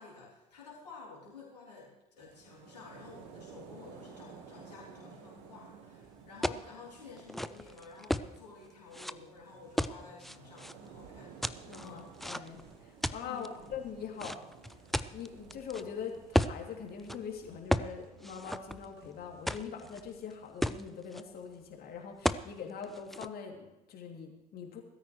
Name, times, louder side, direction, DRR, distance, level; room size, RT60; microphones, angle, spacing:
voice 1, 0.0-11.3 11.8-12.1 13.2-13.7, left 4 dB, 85° left, -5 dB, 3.6 m, -51 dB
sound 1, 2.2-17.4, right 6 dB, 65° right, 1.5 m, -55 dB
sound 2, 6.4-6.7 7.2-8.3 8.9-9.1 9.8-10.7 11.4-12.6 13.0-13.5 14.2-15.8 16.3-16.6 17.0-17.2 17.7-17.9 18.2-19.1 19.5-20.0 20.3-20.4 20.6-21.2 22.3-22.5 22.8-23.3, equal, ahead, 0.5 m, -33 dB
sound 3, 9.4-20.1, right 2 dB, 80° right, 3.3 m, -62 dB
voice 2, 11.7-14.4 15.1-24.8, left 7 dB, 50° left, 1 dB, 2.8 m, -43 dB
20.5 x 13.5 x 3.2 m, 0.96 s
figure-of-eight pair, 60°, 20 cm